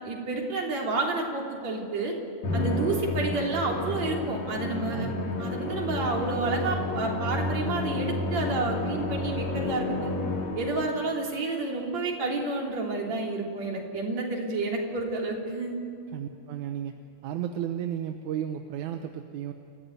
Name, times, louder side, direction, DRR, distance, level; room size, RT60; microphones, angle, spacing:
voice 1, 0.0-2.1 2.5-10.2 10.6-15.8, right 3 dB, 60° right, 0 dB, 4.5 m, -30 dB
Musical instrument, 2.4-11.0, left 2 dB, 65° left, 3.7 m, -31 dB
voice 2, 16.1-17.0 17.2-19.5, right 10 dB, 80° right, 6 dB, 2.3 m, -33 dB
29.0 x 15.0 x 9.4 m, 2.5 s
omnidirectional pair, 3.5 m